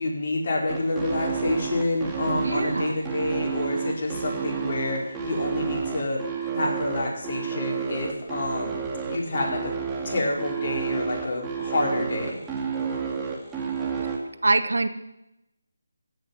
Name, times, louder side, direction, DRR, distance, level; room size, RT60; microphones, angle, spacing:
voice 1, 0.0-6.2 6.5-8.8 9.1-9.7 10.0-12.4, left 2 dB, 45° left, -2 dB, 4.7 m, -28 dB
sound 1, 0.7-14.2, right 6 dB, 10° right, 2.3 m, -30 dB
voice 2, 2.3-2.9 14.4-14.9, right 2 dB, 75° right, 11 dB, 1.2 m, -24 dB
15.5 x 6.9 x 9.5 m, 0.88 s
figure-of-eight pair, 160°, 0 cm